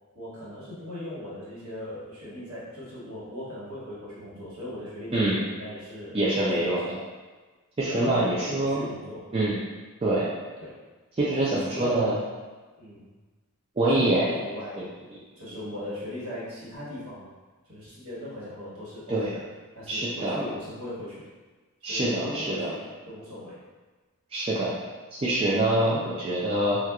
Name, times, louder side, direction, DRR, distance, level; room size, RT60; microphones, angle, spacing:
voice 1, 0.1-7.0 7.8-9.3 10.6-10.8 11.4-12.2 12.8-13.1 14.0-14.9 15.4-17.3 17.6-19.4 19.7-21.2 21.9-23.6, left 1 dB, 65° right, -9 dB, 1.4 m, -38 dB
voice 2, 6.1-7.0 7.8-8.9 9.3-9.6 10.0-10.3 11.2-12.2 13.8-14.3 19.1-19.3 19.9-20.4 21.8-22.7 24.3-24.7 25.1-26.8, right 1 dB, 25° right, -7 dB, 0.4 m, -25 dB
4.2 x 2.3 x 2.3 m, 1.3 s
head